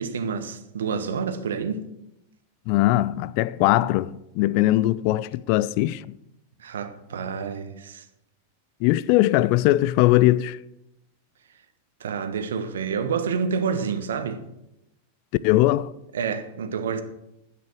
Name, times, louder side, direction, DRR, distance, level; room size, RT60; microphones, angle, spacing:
voice 1, 0.0-1.9 6.6-8.1 12.0-14.4 16.1-17.0, right 6 dB, 65° right, 1.3 m, -28 dB
voice 2, 2.7-6.2 8.8-10.6 15.4-15.9, left 16 dB, 45° left, 0.4 m, -20 dB
12.0 x 9.2 x 6.4 m
figure-of-eight pair, 90°, 0 cm